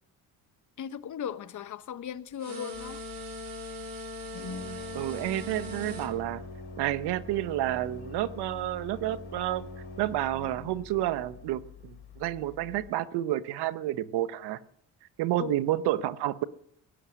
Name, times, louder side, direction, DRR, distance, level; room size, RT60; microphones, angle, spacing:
voice 1, 0.8-3.0 15.4-15.5, left 8 dB, 50° left, 0.9 m, -37 dB
sound 1, 2.4-6.1, left 1 dB, 55° right, 4.0 m, -40 dB
Organ, 2.7-12.9, left 3 dB, 35° left, 2.6 m, -44 dB
voice 2, 4.9-6.4 6.8-9.7 10.0-14.6 15.2-16.4, right 14 dB, 80° right, 0.9 m, -30 dB
17.5 x 9.5 x 6.2 m
cardioid pair, 90°, 39 cm